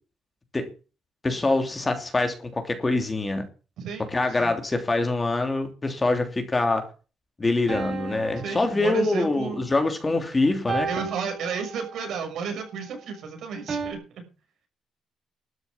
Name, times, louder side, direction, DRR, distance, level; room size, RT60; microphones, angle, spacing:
voice 1, 1.2-3.5 4.1-6.9 7.4-11.1, left 2 dB, 25° left, 3.1 m, -25 dB
sound 1, 7.7-9.5 10.7-12.1 13.7-13.9, right 4 dB, 40° right, 4.8 m, -34 dB
voice 2, 8.3-9.7 10.9-14.2, right 6 dB, 75° right, 6.3 m, -32 dB
13.0 x 7.0 x 9.8 m
cardioid pair, 90°, 0 cm